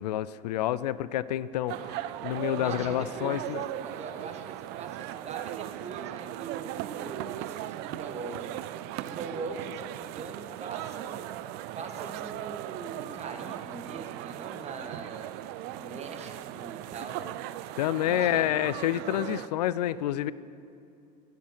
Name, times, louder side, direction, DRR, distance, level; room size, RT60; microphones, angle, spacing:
voice 1, 0.0-3.7 17.8-20.3, left 13 dB, 75° left, 18 dB, 0.4 m, -28 dB
sound 1, 1.7-19.5, right 14 dB, 50° right, 0.4 m, -38 dB
voice 2, 2.5-3.5 3.8-8.5 8.9-11.3 11.7-15.4 15.6-17.3 18.0-18.5, right 4 dB, 30° right, 5 dB, 1.6 m, -41 dB
10.0 x 7.8 x 6.5 m, 2.5 s
hypercardioid pair, 75°, 21 cm